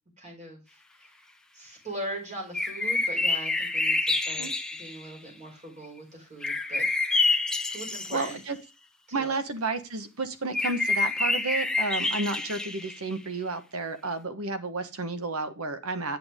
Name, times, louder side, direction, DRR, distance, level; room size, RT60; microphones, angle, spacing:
voice 1, 0.2-0.6 1.5-4.5 4.8-6.9 7.7-8.4 9.2-9.4, right 1 dB, 35° right, 0 dB, 4.4 m, -40 dB
sound 1, 2.5-5.1 6.4-8.3 10.5-13.1, left 3 dB, 5° left, 0.9 m, -27 dB
voice 2, 8.1-8.6 9.1-16.2, right 3 dB, 85° right, 10 dB, 1.3 m, -31 dB
8.8 x 7.2 x 3.6 m, 0.29 s
head